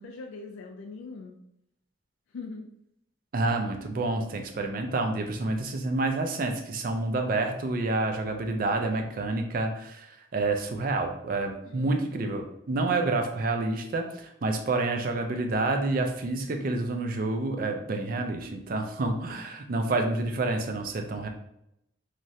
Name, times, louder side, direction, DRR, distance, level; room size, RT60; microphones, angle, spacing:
voice 1, 0.0-1.4 2.3-2.7 11.6-12.2, left 3 dB, 85° left, 1 dB, 0.4 m, -41 dB
voice 2, 3.3-21.3, right 2 dB, 45° right, 4 dB, 0.4 m, -28 dB
3.1 x 2.4 x 2.6 m, 0.79 s
head